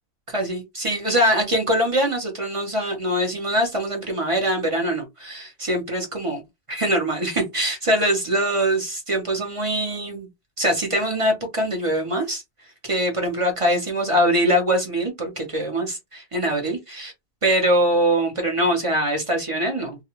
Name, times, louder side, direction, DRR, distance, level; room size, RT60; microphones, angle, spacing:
voice 1, 0.3-6.4 6.7-10.3 10.6-12.4 12.8-17.1 17.4-20.0, right 1 dB, 35° right, 0.5 m, -23 dB
2.4 x 2.3 x 2.9 m
omnidirectional pair, 1.4 m